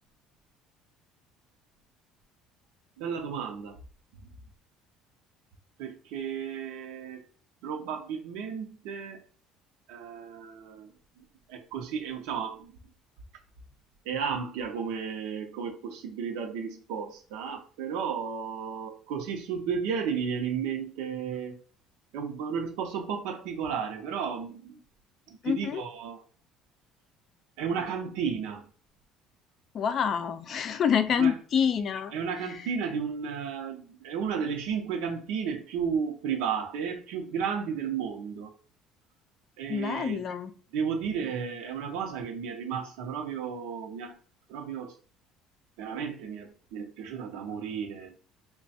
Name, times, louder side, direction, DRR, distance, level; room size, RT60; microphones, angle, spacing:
voice 1, 3.0-3.8 5.8-7.2 7.6-9.2 9.9-10.9 11.2-12.8 14.0-21.6 22.1-24.8 25.3-26.2 27.6-28.6 31.2-31.3 32.1-38.5 39.6-40.3 40.7-44.2 44.5-44.9 45.8-48.1, right 6 dB, 85° right, 2 dB, 0.7 m, -33 dB
voice 2, 25.4-25.8 29.7-32.1 39.7-40.5, left 7 dB, 40° left, 10 dB, 0.4 m, -27 dB
3.3 x 2.3 x 4.1 m, 0.40 s
cardioid pair, 145°, 0 cm